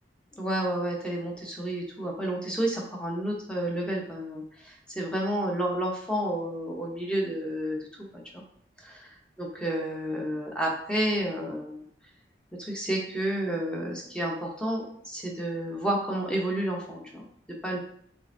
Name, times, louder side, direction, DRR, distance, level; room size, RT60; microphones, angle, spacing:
voice 1, 0.4-7.8 8.3-8.4 8.8-9.1 9.4-11.8 12.6-17.3 17.6-17.8, right 1 dB, 5° left, -1 dB, 0.8 m, -30 dB
6.6 x 2.5 x 2.6 m, 0.65 s
head